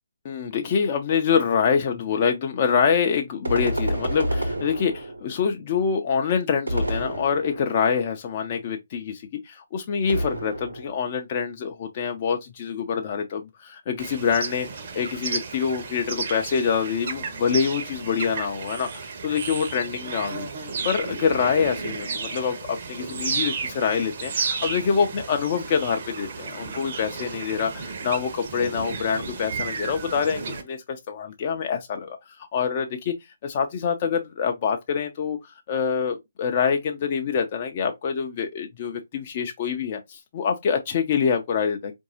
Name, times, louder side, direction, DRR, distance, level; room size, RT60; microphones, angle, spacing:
voice 1, 0.2-14.7 14.9-33.1 33.4-41.9, left 6 dB, 35° left, 0.5 m, -25 dB
sound 1, 3.4-5.4 6.7-7.9 10.1-11.1, right 1 dB, 80° right, 1.2 m, -28 dB
sound 2, 14.0-30.6, right 5 dB, 45° right, 0.8 m, -33 dB
4.5 x 2.6 x 2.7 m
figure-of-eight pair, 140°, 0 cm